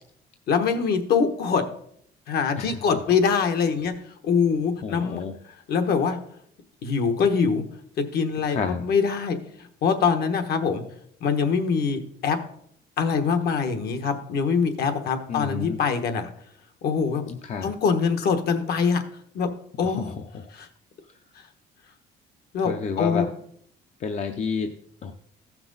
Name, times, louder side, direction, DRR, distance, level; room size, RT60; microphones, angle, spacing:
voice 1, 0.5-1.6 2.3-3.9 4.2-5.2 5.7-6.2 6.8-7.6 8.0-9.4 9.8-10.8 11.2-12.4 13.0-16.3 16.8-17.2 17.6-19.0 19.3-19.5 19.8-20.1 20.5-20.7 22.5-23.3, left 6 dB, 60° left, 7 dB, 1.1 m, -23 dB
voice 2, 2.6-3.0 4.8-5.4 8.4-8.9 15.3-15.8 17.3-17.7 19.8-20.5 21.1-21.2 22.6-23.3 24.0-24.8 25.0-25.1, left 5 dB, 40° left, 5 dB, 0.6 m, -31 dB
15.0 x 5.9 x 3.9 m, 0.67 s
cardioid pair, 145°, 18 cm